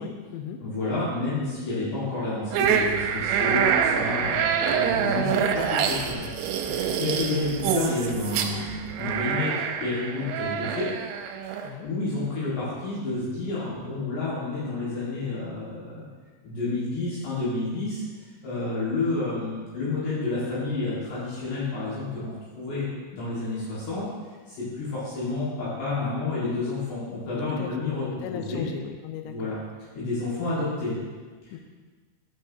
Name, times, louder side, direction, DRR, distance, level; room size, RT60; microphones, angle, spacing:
voice 1, 0.0-0.6 6.7-7.0 11.6-11.9 27.6-27.7 28.0-29.6 31.5-31.6, left 9 dB, 85° left, 5 dB, 2.5 m, -38 dB
voice 2, 0.6-6.3 6.7-9.5 9.8-10.9 11.4-16.0 16.4-18.0 18.4-22.3 22.6-24.1 24.5-28.1 28.3-28.7 29.3-29.6 29.9-30.9, left 2 dB, 65° left, -9 dB, 3.5 m, -30 dB
sound 1, 2.5-11.7, right 7 dB, 85° right, 3.3 m, -26 dB
13.0 x 6.5 x 2.7 m, 1.4 s
omnidirectional pair, 5.8 m